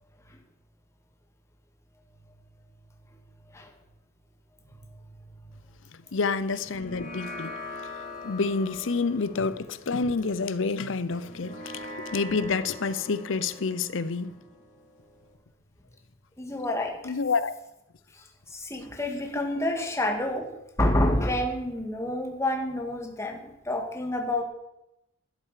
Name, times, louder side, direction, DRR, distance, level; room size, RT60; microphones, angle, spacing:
voice 1, 6.1-7.5 8.2-11.6 12.1-14.3 17.1-17.5, left 4 dB, 70° left, 0.7 m, -28 dB
sound 1, 6.6-15.3, left 2 dB, 40° left, 3.1 m, -43 dB
voice 2, 16.4-17.0 18.5-20.5 20.8-24.4, left 1 dB, 15° left, 2.0 m, -28 dB
12.5 x 11.0 x 5.0 m
head